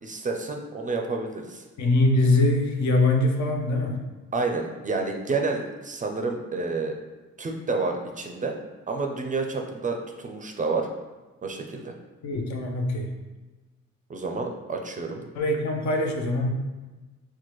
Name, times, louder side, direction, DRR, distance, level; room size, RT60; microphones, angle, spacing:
voice 1, 0.0-1.6 4.3-6.9 7.4-8.5 8.9-10.9 11.4-11.9 14.1-15.2, right 3 dB, 25° right, 3 dB, 0.4 m, -29 dB
voice 2, 1.8-4.0 12.2-13.1 15.3-16.5, left 2 dB, 65° left, 2 dB, 0.6 m, -23 dB
4.3 x 2.2 x 3.0 m, 1.2 s
cardioid pair, 90°, 30 cm